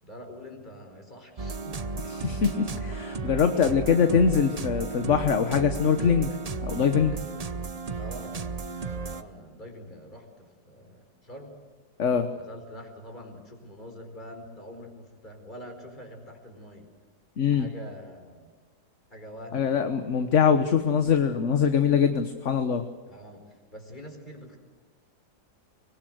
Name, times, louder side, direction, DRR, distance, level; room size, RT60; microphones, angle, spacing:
voice 1, 0.0-2.1 2.4-2.5 8.0-8.4 9.1-11.6 12.3-16.9 17.5-18.5 19.1-19.8 23.0-24.6, equal, 25° left, 3 dB, 4.8 m, -45 dB
sound 1, 1.4-9.2, right 4 dB, 35° right, 0.6 m, -34 dB
voice 2, 2.2-6.3 6.6-7.2 12.0-12.3 17.4-17.7 19.5-22.8, left 7 dB, 50° left, 7 dB, 1.4 m, -23 dB
24.5 x 21.0 x 8.0 m, 1.5 s
omnidirectional pair, 1.7 m